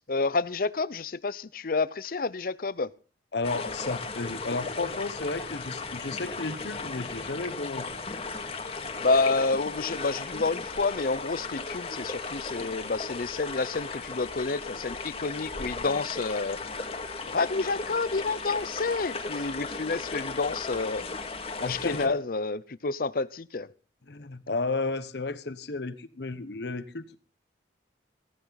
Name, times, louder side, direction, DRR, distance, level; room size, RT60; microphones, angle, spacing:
voice 1, 0.0-2.9 9.0-16.7 17.3-21.1 21.6-23.7, left 3 dB, 55° left, 0.7 m, -29 dB
voice 2, 3.3-8.0 21.6-22.2 24.1-27.2, left 3 dB, 70° left, 1.0 m, -33 dB
sound 1, 3.4-22.1, left 3 dB, 35° left, 2.1 m, -36 dB
17.5 x 16.5 x 4.0 m
head